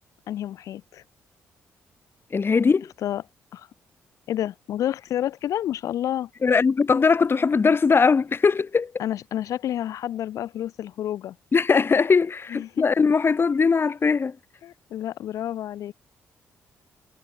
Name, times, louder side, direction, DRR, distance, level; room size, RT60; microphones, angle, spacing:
voice 1, 0.3-1.0 3.0-3.2 3.5-3.7 4.3-6.3 9.0-11.4 12.5-12.9 14.6-15.9, left 11 dB, 75° left, 4.7 m, -29 dB
voice 2, 2.3-2.9 6.4-8.9 11.5-14.4, left 5 dB, 45° left, 5.8 m, -20 dB
supercardioid pair, 55°, 6 cm